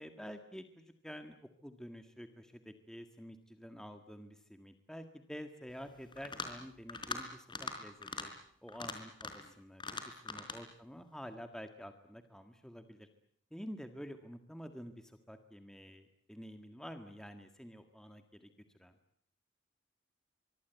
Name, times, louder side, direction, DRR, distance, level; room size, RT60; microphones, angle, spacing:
voice 1, 0.0-1.4 1.6-8.3 8.6-13.1 13.5-18.5 18.8-18.9, equal, 5° left, 7 dB, 1.7 m, -49 dB
sound 1, 6.1-6.6 6.9-7.2 7.5-7.8 8.0-8.3 8.7-9.5 9.8-10.6, left 4 dB, 25° left, 4.2 m, -41 dB
24.5 x 24.0 x 8.2 m, 0.67 s
head